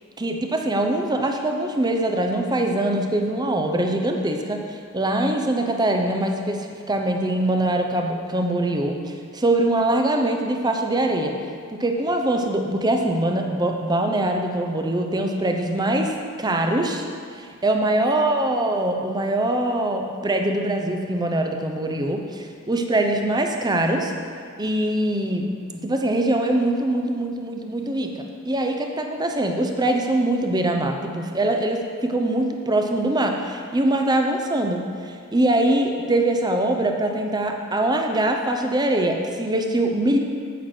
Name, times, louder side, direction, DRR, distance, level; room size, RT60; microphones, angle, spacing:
voice 1, 0.2-11.3 11.7-17.1 17.3-24.1 24.6-25.5 25.7-40.2, right 1 dB, 20° right, 3 dB, 0.7 m, -23 dB
9.2 x 8.0 x 4.4 m, 2.2 s
head